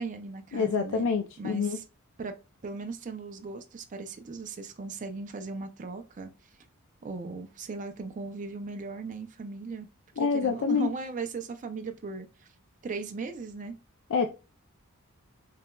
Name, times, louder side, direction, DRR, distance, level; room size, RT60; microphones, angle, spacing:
voice 1, 0.0-1.1 1.4-1.8 2.2-2.3 2.6-6.3 7.0-9.9 10.2-12.5 12.8-13.7, right 4 dB, 35° right, 0.4 m, -37 dB
voice 2, 0.5-1.8 10.2-10.9 14.1-14.3, left 5 dB, 60° left, 0.4 m, -26 dB
6.5 x 2.2 x 2.2 m
head